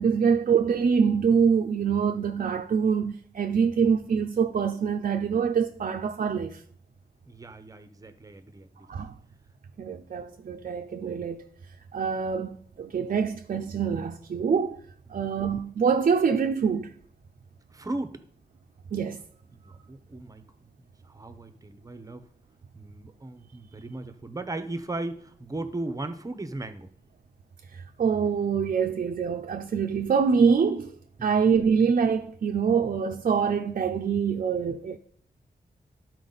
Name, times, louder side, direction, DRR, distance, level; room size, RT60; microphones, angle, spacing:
voice 1, 0.0-6.6 8.9-9.2 9.8-11.5 11.9-14.8 15.1-16.9 18.9-19.2 27.7-31.0 31.2-35.0, right 6 dB, 55° right, 0.5 m, -25 dB
voice 2, 7.2-8.9 17.7-18.2 19.6-20.4 20.8-22.3 22.7-26.9 31.2-31.4, right 2 dB, 20° right, 0.8 m, -37 dB
12.0 x 4.5 x 4.0 m
wide cardioid pair, 115°, 16 cm